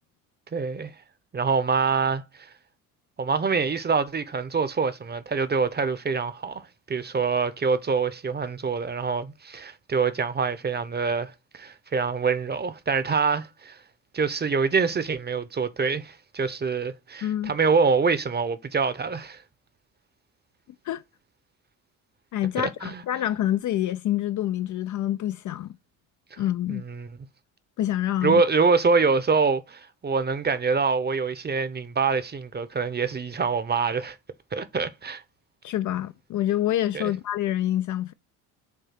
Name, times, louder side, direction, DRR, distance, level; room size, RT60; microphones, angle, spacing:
voice 1, 0.5-0.9 1.3-2.5 3.2-13.8 14.1-19.4 22.6-23.0 26.3-26.4 26.7-27.1 28.2-34.2 34.5-35.2 36.9-37.1, right 5 dB, 20° right, 0.8 m, -25 dB
voice 2, 17.2-17.5 20.9-21.0 22.3-25.7 26.4-26.8 27.8-28.4 35.6-38.1, left 12 dB, 40° left, 0.5 m, -27 dB
7.3 x 2.7 x 5.8 m
hypercardioid pair, 65°, 46 cm